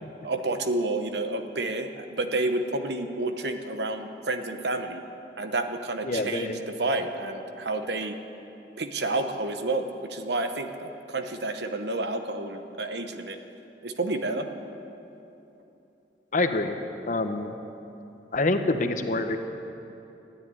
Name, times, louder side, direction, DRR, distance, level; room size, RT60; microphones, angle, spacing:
voice 1, 0.2-5.0 5.4-8.2 8.8-13.4 13.8-14.5, right 2 dB, 70° right, 7 dB, 1.0 m, -30 dB
voice 2, 6.0-6.6 16.3-16.8 17.1-17.5 18.3-19.4, left 2 dB, 45° left, 7 dB, 0.9 m, -26 dB
13.5 x 9.8 x 9.7 m, 2.9 s
head